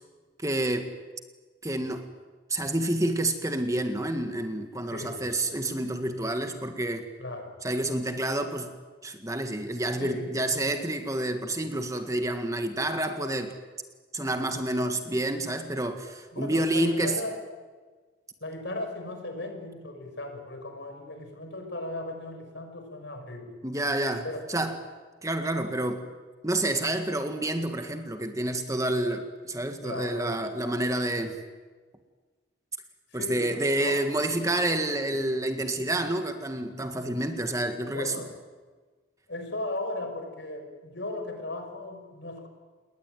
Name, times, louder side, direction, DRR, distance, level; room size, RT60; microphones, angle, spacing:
voice 1, 0.4-0.9 1.6-2.1 2.5-7.1 7.6-8.7 9.0-13.6 14.1-17.2 23.6-24.8 25.2-26.1 26.4-31.4 33.1-38.1, right 1 dB, 15° right, 6 dB, 1.7 m, -29 dB
voice 2, 4.9-5.3 7.2-7.6 10.0-10.4 11.6-11.7 14.8-14.9 16.3-17.3 18.4-23.6 24.2-24.7 29.8-30.4 33.1-34.0 37.9-38.3 39.3-42.5, left 2 dB, 60° left, 6 dB, 5.7 m, -37 dB
28.5 x 21.0 x 9.3 m, 1.4 s
head